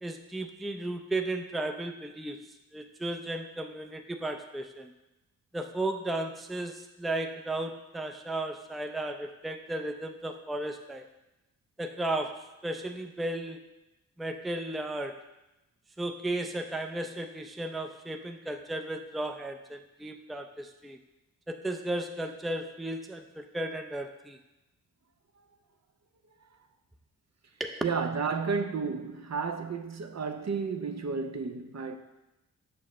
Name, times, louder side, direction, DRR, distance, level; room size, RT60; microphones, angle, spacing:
voice 1, 0.0-2.4 2.7-4.9 5.5-11.0 11.8-13.7 14.2-15.2 16.0-21.0 21.5-24.4 27.6-27.8, right 1 dB, ahead, 0.5 m, -35 dB
voice 2, 27.8-32.0, right 5 dB, 45° right, 0.7 m, -32 dB
6.4 x 6.3 x 3.1 m
supercardioid pair, 40°, 36 cm